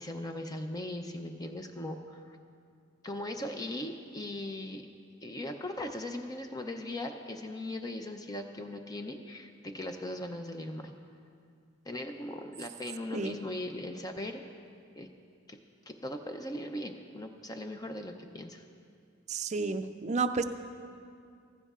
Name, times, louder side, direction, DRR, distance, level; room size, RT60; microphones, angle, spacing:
voice 1, 0.0-2.4 3.0-4.8 5.2-10.9 11.9-14.4 14.9-15.1 15.5-15.6 15.9-18.6, left 1 dB, 20° left, 5 dB, 0.5 m, -39 dB
voice 2, 19.3-20.4, right 4 dB, 35° right, 9 dB, 0.4 m, -31 dB
15.5 x 14.5 x 2.4 m, 2.3 s
head